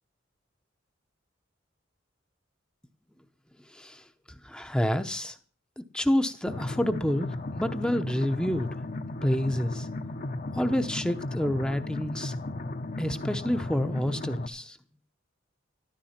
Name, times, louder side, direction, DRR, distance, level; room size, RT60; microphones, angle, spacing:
voice 1, 4.4-5.4 5.8-7.3 7.6-8.7 9.2-9.9 10.5-12.3 13.0-14.8, equal, 5° left, 8 dB, 0.8 m, -28 dB
sound 1, 6.5-14.5, left 2 dB, 45° left, 1.0 m, -35 dB
13.0 x 12.5 x 5.8 m, 0.38 s
head